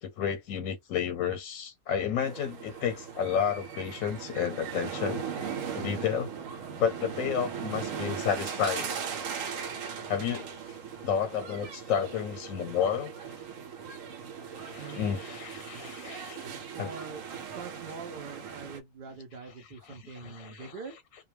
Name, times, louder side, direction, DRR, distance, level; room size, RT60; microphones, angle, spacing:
voice 1, 0.0-5.2 5.7-6.3 6.8-8.9 9.4-9.5 10.1-10.6 11.0-13.1 14.5-16.5 16.8-16.9 19.9-20.7, left 8 dB, 90° left, 1.0 m, -31 dB
sound 1, 2.2-18.8, right 7 dB, 80° right, 1.0 m, -39 dB
voice 2, 14.8-15.1 16.7-21.0, right 5 dB, 55° right, 0.6 m, -44 dB
2.2 x 2.1 x 3.1 m
omnidirectional pair, 1.4 m